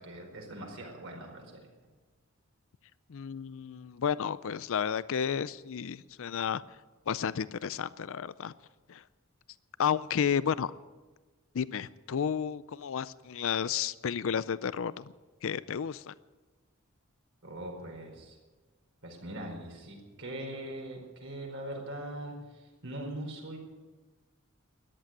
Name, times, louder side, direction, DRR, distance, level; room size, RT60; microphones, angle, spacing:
voice 1, 0.0-1.5 17.4-18.4 19.0-23.6, right 1 dB, 60° right, 0 dB, 4.7 m, -41 dB
voice 2, 3.1-6.6 7.1-8.5 8.9-9.0 9.8-10.7 11.5-15.0 15.4-16.1, left 7 dB, 65° left, 17 dB, 0.4 m, -32 dB
14.0 x 11.5 x 9.0 m, 1.3 s
head